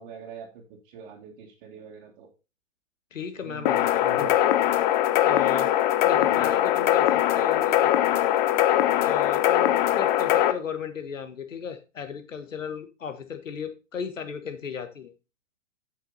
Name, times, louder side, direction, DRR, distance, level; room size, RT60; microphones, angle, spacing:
voice 1, 0.0-2.3 3.4-4.5 6.3-6.5, right 5 dB, 40° right, -3 dB, 2.0 m, -43 dB
voice 2, 3.1-4.3 5.2-5.7 6.0-7.9 9.0-15.1, left 6 dB, 80° left, 8 dB, 1.6 m, -35 dB
sound 1, 3.7-10.5, left 12 dB, 40° left, 0.7 m, -21 dB
8.6 x 6.5 x 4.1 m, 0.30 s
hypercardioid pair, 125°, 38 cm